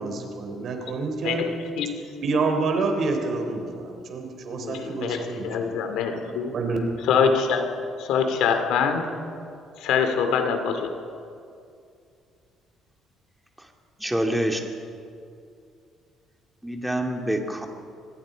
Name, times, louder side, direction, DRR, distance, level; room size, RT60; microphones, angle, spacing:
voice 1, 0.0-1.4 2.2-5.7 6.1-6.2 6.5-6.8, right 3 dB, 55° right, 4 dB, 3.5 m, -28 dB
voice 2, 4.5-6.5 7.1-7.7 8.0-9.1 9.8-10.9, left 6 dB, 85° left, 7 dB, 2.4 m, -24 dB
voice 3, 14.0-14.6 16.6-17.7, right 1 dB, 5° right, 3 dB, 2.2 m, -26 dB
25.0 x 20.0 x 5.1 m, 2.4 s
cardioid pair, 125°, 0 cm